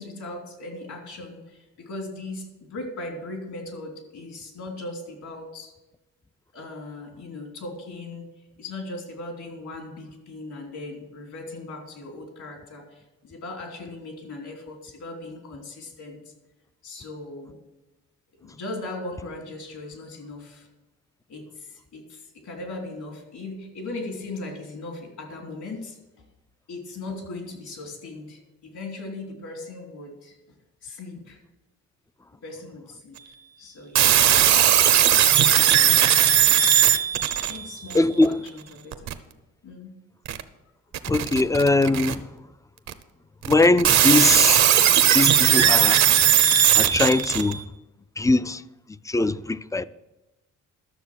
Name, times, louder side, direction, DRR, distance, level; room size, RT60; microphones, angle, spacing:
voice 1, 0.0-5.7 6.5-8.2 8.6-16.3 16.8-17.6 18.4-20.7 21.3-26.0 26.7-30.3 30.8-31.4 32.4-34.1 35.1-36.3 37.4-39.1 39.6-40.0 49.8-49.9, left 2 dB, 75° left, 3.2 m, -38 dB
sound 1, 34.0-38.0 38.9-39.1 40.3-40.4 40.9-42.1 42.9-43.0 43.5-47.6, right 10 dB, 65° right, 0.8 m, -18 dB
voice 2, 37.9-38.4 41.1-42.2 43.5-44.7 45.1-46.0 46.8-47.6 48.2-48.6 49.1-49.8, left 2 dB, 10° left, 0.3 m, -21 dB
12.5 x 6.8 x 6.3 m
cardioid pair, 90°, 30 cm